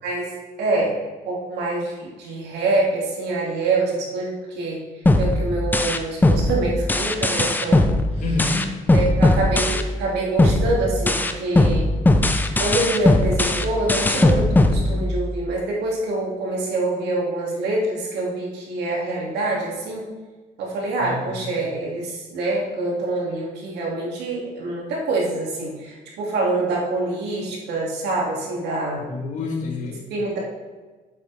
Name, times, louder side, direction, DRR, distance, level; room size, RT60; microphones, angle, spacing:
voice 1, 0.0-1.0 1.3-4.8 5.2-7.9 8.9-11.9 12.6-20.0 20.6-29.0 30.1-30.4, right 2 dB, 80° right, -3 dB, 2.6 m, -25 dB
sound 1, 5.1-10.1 10.4-15.4, left 2 dB, 10° left, 0.6 m, -19 dB
voice 2, 8.2-8.8 21.0-21.4 29.0-30.1, left 3 dB, 50° left, -2 dB, 1.6 m, -28 dB
8.1 x 7.9 x 3.5 m, 1.3 s
cardioid pair, 110°, 17 cm